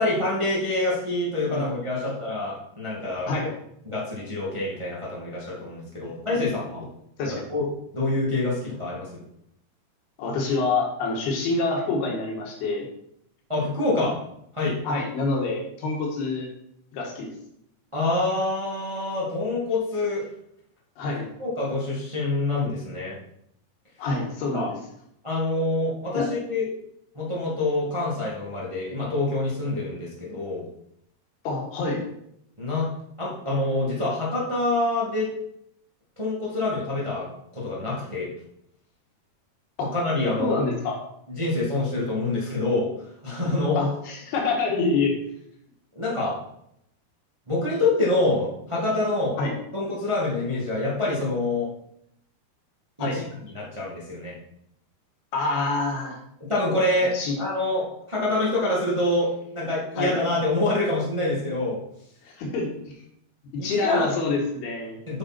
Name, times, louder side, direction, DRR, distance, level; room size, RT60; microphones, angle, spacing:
voice 1, 0.0-3.3 3.8-6.8 7.2-7.6 7.9-9.2 13.5-14.2 14.5-14.8 17.9-20.2 21.4-23.2 24.5-24.7 25.2-26.6 27.1-30.7 32.6-32.9 33.2-35.3 36.2-37.3 37.5-38.3 39.8-40.6 41.3-42.9 43.2-43.9 45.9-46.4 47.5-49.4 49.7-51.7 53.0-53.2 53.5-54.3 56.4-57.1 57.4-61.8 63.6-64.1 65.1-65.2, left 2 dB, 20° right, -6 dB, 0.8 m, -26 dB
voice 2, 6.0-6.5 7.2-7.4 10.2-12.9 14.8-16.5 16.9-17.3 21.0-21.3 24.0-24.8 26.1-26.3 31.5-32.1 39.8-39.9 40.4-41.0 43.8-45.1 49.4-49.6 53.0-53.2 55.3-56.2 57.1-57.4 60.0-60.2 62.2-62.9 63.5-65.0, left 3 dB, 70° left, 0 dB, 3.6 m, -26 dB
9.3 x 6.1 x 4.5 m, 0.74 s
omnidirectional pair, 4.8 m